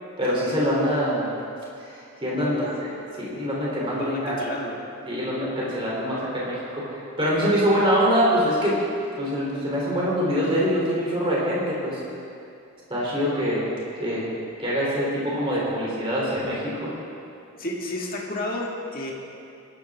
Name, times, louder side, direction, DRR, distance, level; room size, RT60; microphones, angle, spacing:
voice 1, 0.2-1.3 1.9-2.9 3.2-4.3 5.1-8.8 9.2-12.0 12.9-13.6 14.0-14.3 14.6-16.9, equal, 25° right, -6 dB, 3.3 m, -24 dB
voice 2, 2.4-2.7 4.0-4.8 17.6-19.1, left 1 dB, 45° left, -2 dB, 1.9 m, -31 dB
19.5 x 12.5 x 3.6 m, 2.6 s
head